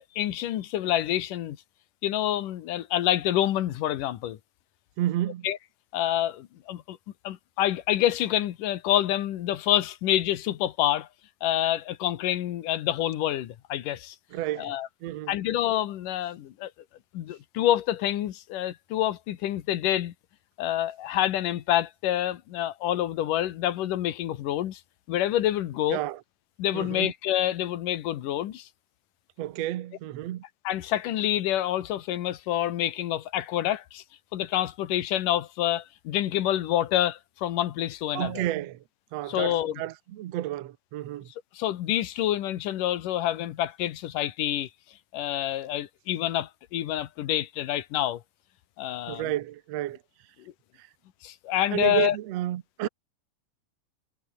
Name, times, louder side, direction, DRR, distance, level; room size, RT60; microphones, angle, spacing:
voice 1, 0.0-1.6 2.0-4.4 5.4-5.6 5.9-7.0 7.2-11.1 11.4-14.2 14.6-14.9 15.3-16.7 17.1-20.1 20.6-24.8 25.1-26.0 26.6-28.7 30.6-34.0 34.3-38.4 39.3-39.8 41.5-44.7 45.1-48.2 48.8-49.2 51.2-52.2, left 12 dB, 85° left, 2.9 m, -27 dB
voice 2, 5.0-5.5 14.3-14.8 15.0-15.4 25.9-26.2 26.7-27.1 29.4-30.4 38.1-38.8 39.1-41.3 49.1-50.0 50.8-50.9 51.7-52.9, right 13 dB, 65° right, 1.9 m, -31 dB
omnidirectional pair, 3.7 m